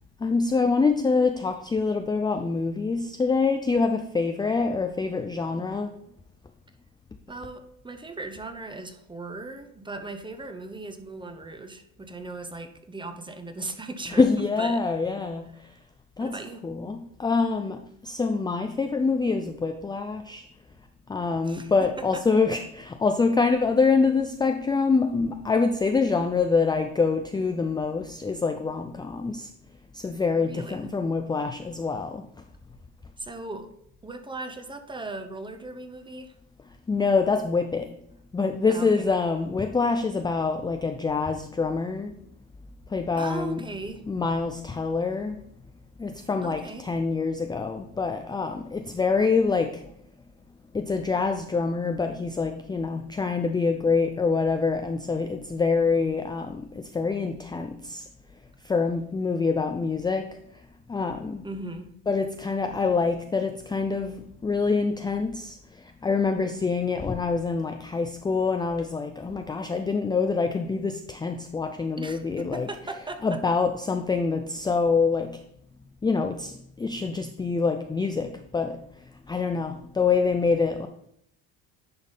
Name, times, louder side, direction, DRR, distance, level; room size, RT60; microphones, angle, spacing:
voice 1, 0.2-5.9 14.2-15.5 16.2-16.4 16.6-20.4 21.1-29.5 29.9-32.3 36.9-37.9 38.3-42.1 42.9-43.6 44.1-45.4 46.0-49.8 50.7-58.1 58.6-60.3 60.9-61.4 62.1-72.7 73.2-75.3 76.0-78.8 79.3-80.9, left 4 dB, 10° left, 6 dB, 0.4 m, -25 dB
voice 2, 7.3-14.3 14.6-14.8 15.6-15.7 16.2-16.6 21.5-21.7 22.0-22.2 30.4-30.9 33.2-33.7 34.0-36.3 38.7-39.1 43.2-44.0 46.4-46.9 61.4-61.9 71.9-73.4, right 2 dB, 15° right, 7 dB, 0.9 m, -38 dB
10.5 x 3.5 x 4.0 m, 0.72 s
supercardioid pair, 85°, 35 cm